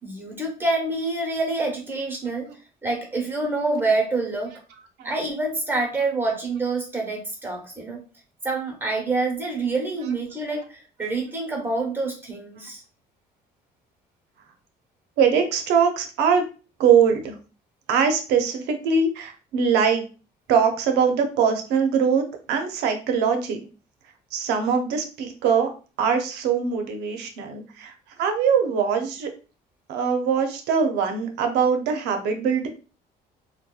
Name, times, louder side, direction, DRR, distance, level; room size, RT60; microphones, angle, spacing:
voice 1, 0.0-2.5 2.8-4.6 5.0-8.0 8.4-12.8, right 3 dB, 15° right, 0 dB, 1.0 m, -27 dB
voice 2, 15.2-16.4 16.8-17.3 17.9-20.0 20.5-23.6 24.3-25.7 26.0-27.9 28.2-29.3 29.9-32.7, right 6 dB, 85° right, 5 dB, 0.6 m, -22 dB
2.7 x 2.2 x 2.3 m, 0.35 s
cardioid pair, 110°, 17 cm